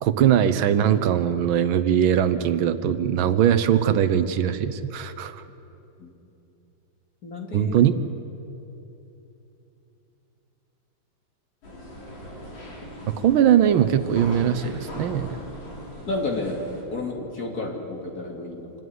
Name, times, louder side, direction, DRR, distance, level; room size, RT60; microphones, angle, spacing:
voice 1, 0.0-5.4 7.5-7.9 13.2-15.4, right 9 dB, 85° right, 12 dB, 1.7 m, -21 dB
voice 2, 7.2-7.8 16.1-16.6 16.9-18.7, left 2 dB, 50° left, 1 dB, 3.0 m, -31 dB
sound 1, 11.6-16.8, equal, 80° left, 4.7 m, -39 dB
26.0 x 13.0 x 9.6 m, 2.9 s
omnidirectional pair, 2.2 m